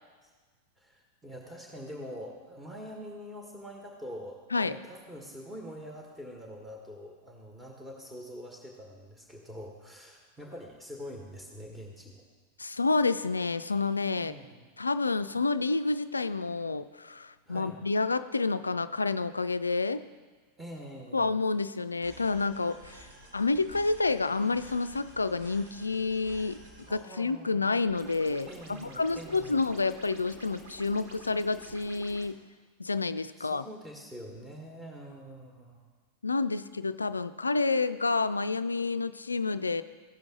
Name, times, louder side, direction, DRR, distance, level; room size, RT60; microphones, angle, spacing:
voice 1, 0.8-12.2 14.2-14.8 17.5-17.8 20.6-21.3 26.9-27.6 28.4-29.7 33.3-35.8, equal, 5° right, 0 dB, 1.2 m, -45 dB
voice 2, 12.6-14.4 14.8-20.0 21.1-23.1 23.3-26.6 26.9-32.4 32.8-33.6 36.2-39.8, left 3 dB, 80° left, 13 dB, 0.3 m, -29 dB
sound 1, 22.0-27.0, right 1 dB, 60° right, 3.2 m, -52 dB
sound 2, 27.9-32.3, right 3 dB, 45° right, 1.7 m, -49 dB
16.0 x 6.0 x 3.7 m, 1.4 s
figure-of-eight pair, 90°, 0 cm